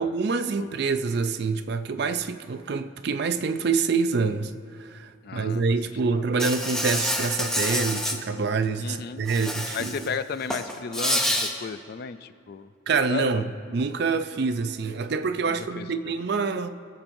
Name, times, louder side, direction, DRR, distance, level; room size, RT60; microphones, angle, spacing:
voice 1, 0.0-4.5 4.8-9.9 12.9-13.5 13.7-16.7, right 4 dB, 50° right, 0.4 m, -26 dB
voice 2, 5.2-5.7 6.1-6.2 8.8-9.2 9.7-12.7 13.1-13.4 15.5-16.1, left 5 dB, 50° left, 0.3 m, -34 dB
Insect, 6.4-8.2 9.3-10.1 10.4-11.5, equal, 5° left, 0.6 m, -27 dB
21.0 x 7.3 x 2.6 m
head